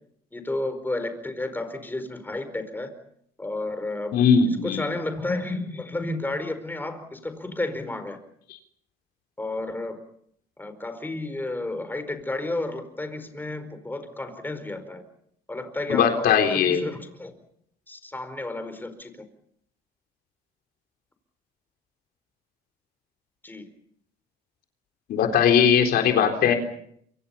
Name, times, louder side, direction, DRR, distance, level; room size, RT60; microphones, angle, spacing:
voice 1, 0.3-2.9 3.4-4.2 4.6-8.2 9.4-10.0 10.6-15.0 15.5-16.3 16.6-17.3 17.9-19.1 23.4-23.6, left 2 dB, 10° left, 9 dB, 4.7 m, -32 dB
voice 2, 4.1-4.9 15.9-16.9 25.1-26.5, left 7 dB, 65° left, 4 dB, 3.9 m, -19 dB
27.5 x 25.5 x 5.7 m, 0.68 s
cardioid pair, 110°, 17 cm